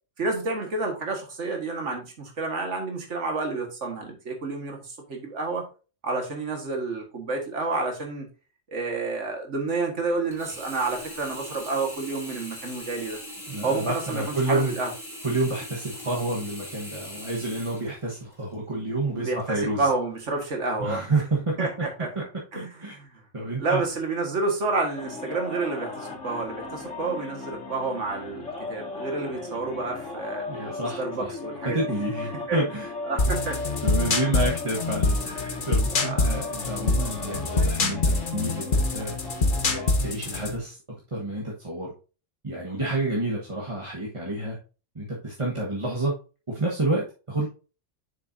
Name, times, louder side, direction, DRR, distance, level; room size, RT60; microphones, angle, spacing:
voice 1, 0.2-5.7 6.0-8.3 8.7-13.2 13.6-14.9 19.2-21.0 21.6-22.1 22.5-22.8 23.6-30.5 31.0-31.9 32.5-32.6 33.1-33.6 36.0-36.3, right 3 dB, 70° right, 2 dB, 2.0 m, -29 dB
Sink (filling or washing), 10.3-18.5 19.1-19.2, equal, ahead, 3.1 m, -41 dB
voice 2, 13.5-14.7 15.2-19.9 20.8-21.9 22.5-23.0 23.3-23.8 30.5-31.3 31.6-32.9 33.2-33.3 33.8-39.1 39.6-40.8 41.1-41.9 42.4-44.6 44.9-46.2 46.5-47.5, right 2 dB, 25° right, -4 dB, 1.3 m, -29 dB
sound 1, 25.0-39.9, left 3 dB, 80° left, 2.7 m, -37 dB
sound 2, 33.2-40.6, left 2 dB, 45° left, 1.2 m, -25 dB
7.6 x 6.8 x 2.7 m, 0.34 s
omnidirectional pair, 1.3 m